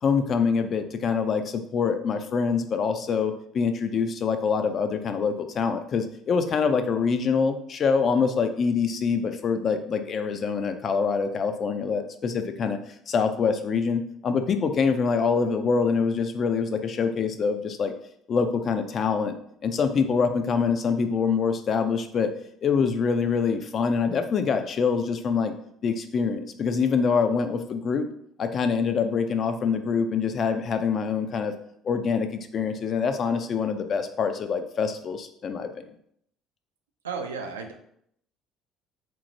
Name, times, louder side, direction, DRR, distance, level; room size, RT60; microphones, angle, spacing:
voice 1, 0.0-12.8 13.1-17.9 18.3-19.3 19.6-22.3 22.6-25.5 25.8-28.1 28.4-31.5 31.8-32.3 32.5-35.8, left 5 dB, 45° left, 7 dB, 0.3 m, -25 dB
voice 2, 37.0-37.8, right 5 dB, 80° right, 4 dB, 0.3 m, -33 dB
3.0 x 2.1 x 2.6 m, 0.70 s
figure-of-eight pair, 55°, 0 cm